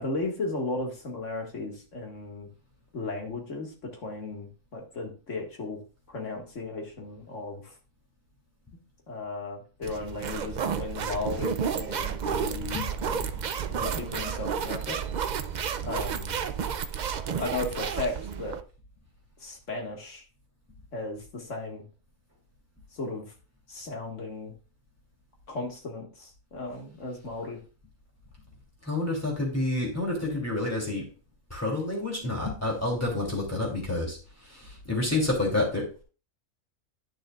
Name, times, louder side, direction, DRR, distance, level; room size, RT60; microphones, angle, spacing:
voice 1, 0.0-2.5 2.9-5.8 6.1-7.7 9.1-12.8 13.7-15.0 15.8-16.4 17.4-18.6 19.4-20.2 20.9-21.8 22.9-23.3 23.7-24.6 25.5-27.6, left 2 dB, 65° left, 1 dB, 2.1 m, -35 dB
sound 1, 9.8-18.6, right 7 dB, 60° right, 0.4 m, -31 dB
voice 2, 12.4-13.4 28.8-31.1 31.5-36.0, left 2 dB, 10° left, -2 dB, 2.9 m, -29 dB
10.5 x 6.5 x 2.4 m, 0.35 s
omnidirectional pair, 1.4 m